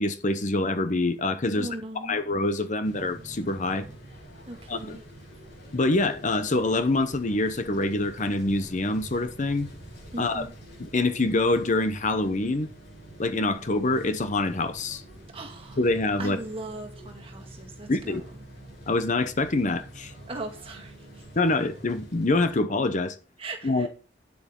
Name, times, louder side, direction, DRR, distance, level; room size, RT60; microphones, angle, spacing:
voice 1, 0.0-1.7 2.0-3.9 4.7-5.0 5.7-9.7 10.2-10.5 10.8-12.7 13.2-15.0 15.8-16.4 17.9-18.2 18.9-20.1 21.4-23.2 23.6-23.9, left 2 dB, 40° left, 0.8 m, -25 dB
voice 2, 1.5-2.2 4.5-5.0 10.1-10.5 15.3-15.8 16.2-18.3 20.3-21.2 23.4-23.9, right 2 dB, 30° right, 2.1 m, -38 dB
sound 1, 2.8-22.6, right 1 dB, 65° left, 6.4 m, -46 dB
9.5 x 8.1 x 3.8 m
head